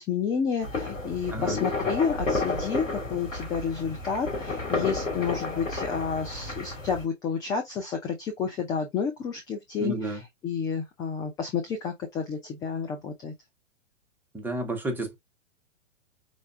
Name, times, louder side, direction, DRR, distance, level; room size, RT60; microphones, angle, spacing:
voice 1, 0.0-13.3, left 6 dB, 10° left, 0.4 m, -30 dB
sound 1, 0.6-7.0, left 2 dB, 90° left, 2.2 m, -31 dB
voice 2, 1.3-1.6 9.8-10.2 14.3-15.2, right 2 dB, 5° right, 1.0 m, -31 dB
5.1 x 3.3 x 2.4 m
figure-of-eight pair, 110°, 38 cm